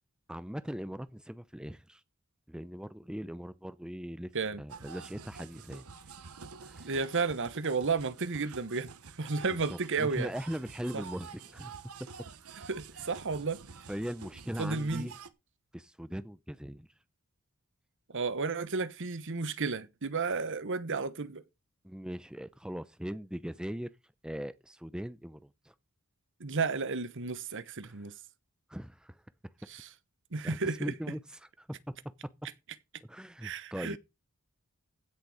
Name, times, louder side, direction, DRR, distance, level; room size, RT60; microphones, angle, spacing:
voice 1, 0.3-2.0 2.5-4.3 4.6-5.8 6.6-6.9 9.7-11.7 13.9-15.1 15.7-16.9 21.8-23.9 24.2-25.7 28.7-29.2 30.4-31.9 33.0-34.0, equal, 5° right, 0.6 m, -40 dB
sound 1, 4.7-15.3, right 5 dB, 90° right, 1.2 m, -49 dB
voice 2, 6.8-8.9 9.2-10.3 10.9-11.0 12.7-13.6 14.6-15.1 18.1-21.4 26.4-28.1 29.7-29.9 30.3-30.9 33.4-34.0, right 4 dB, 60° right, 1.1 m, -32 dB
16.0 x 6.8 x 4.9 m
head